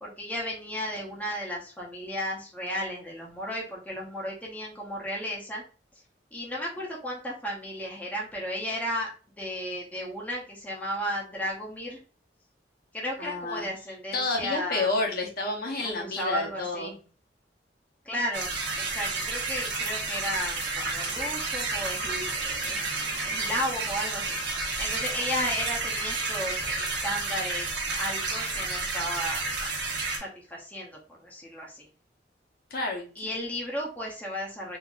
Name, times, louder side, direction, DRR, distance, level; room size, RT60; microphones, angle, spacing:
voice 1, 0.0-5.6 6.3-9.1 9.4-12.0 12.9-14.9 15.8-17.0 18.0-23.0 23.3-29.4 30.2-31.9 33.2-34.8, equal, 10° left, -3 dB, 0.7 m, -34 dB
voice 2, 13.2-13.7 14.1-16.9 32.7-33.3, left 3 dB, 55° left, 0 dB, 1.0 m, -30 dB
sound 1, 18.3-30.2, right 3 dB, 75° right, 1.1 m, -31 dB
3.7 x 2.6 x 2.5 m, 0.37 s
head